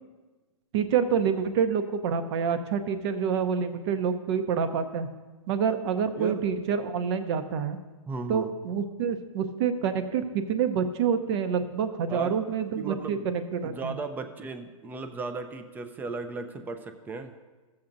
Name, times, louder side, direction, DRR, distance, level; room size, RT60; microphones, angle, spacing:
voice 1, 0.7-5.1 5.5-7.8 8.3-14.0, right 7 dB, 50° right, 9 dB, 0.7 m, -27 dB
voice 2, 8.1-8.5 12.1-12.4 12.8-13.3 13.6-17.3, right 4 dB, 10° right, 8 dB, 0.4 m, -36 dB
15.0 x 7.2 x 2.6 m, 1.3 s
hypercardioid pair, 135°, 18 cm